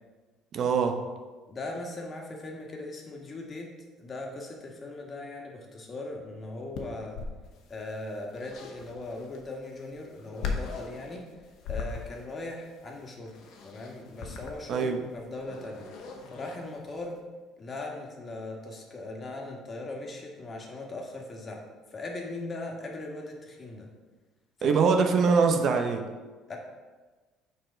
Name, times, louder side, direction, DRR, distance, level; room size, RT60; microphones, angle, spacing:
voice 1, 0.5-0.9 14.7-15.0 24.6-26.0, right 5 dB, 55° right, 4 dB, 0.7 m, -23 dB
voice 2, 1.5-3.7 4.0-7.2 7.7-11.2 11.6-13.4 13.6-15.9 16.3-17.1 17.6-21.6 21.9-23.9 24.6-25.3 26.5-26.6, left 2 dB, 35° left, 1 dB, 1.5 m, -39 dB
sound 1, 6.7-17.1, left 5 dB, 70° left, 1.0 m, -40 dB
6.3 x 4.1 x 5.0 m, 1.3 s
supercardioid pair, 80°, 0 cm